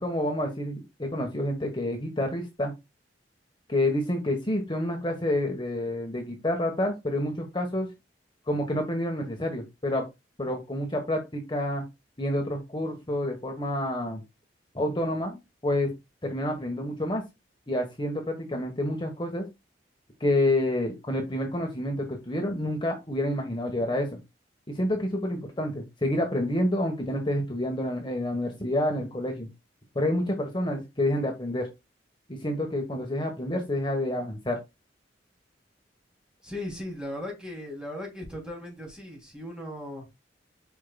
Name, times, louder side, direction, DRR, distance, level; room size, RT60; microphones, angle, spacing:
voice 1, 0.0-2.7 3.7-7.9 8.5-10.1 10.4-11.8 12.2-14.2 14.7-15.9 16.2-17.2 17.7-19.5 20.2-24.2 24.7-29.5 29.9-31.7 32.3-34.6, left 1 dB, 25° left, 1.3 m, -28 dB
voice 2, 36.4-40.0, left 1 dB, 5° right, 2.9 m, -37 dB
8.4 x 5.5 x 2.3 m
head